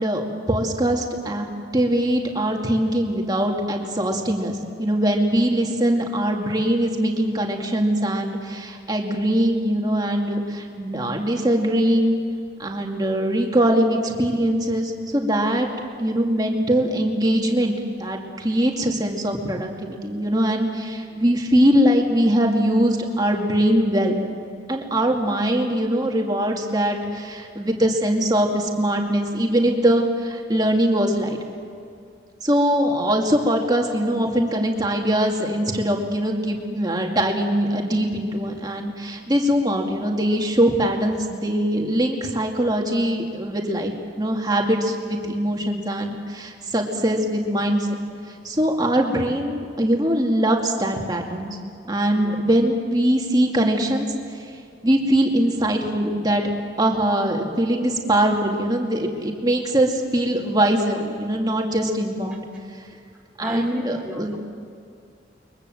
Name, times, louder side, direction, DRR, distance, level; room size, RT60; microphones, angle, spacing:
voice 1, 0.0-1.5 1.7-12.1 12.6-15.7 16.0-17.7 18.0-24.2 24.7-31.4 32.4-47.9 48.4-51.6 51.9-54.1 54.8-56.4 56.8-62.4 63.4-64.4, right 1 dB, 20° right, 1 dB, 2.3 m, -22 dB
voice 2, 63.4-64.4, right 1 dB, 5° right, -2 dB, 1.3 m, -34 dB
29.5 x 22.5 x 7.8 m, 2.3 s
head